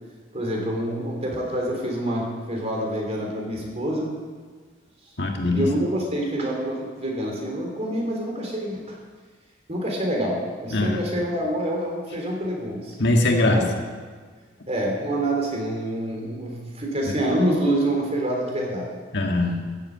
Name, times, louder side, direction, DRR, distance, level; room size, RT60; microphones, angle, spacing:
voice 1, 0.3-4.1 5.5-9.0 9.7-13.0 13.5-13.7 14.7-18.9, right 1 dB, 30° right, -1 dB, 3.5 m, -26 dB
voice 2, 5.2-5.7 10.7-11.0 13.0-13.7 19.1-19.6, left 2 dB, 55° left, 2 dB, 1.7 m, -21 dB
14.0 x 8.6 x 8.7 m, 1.5 s
head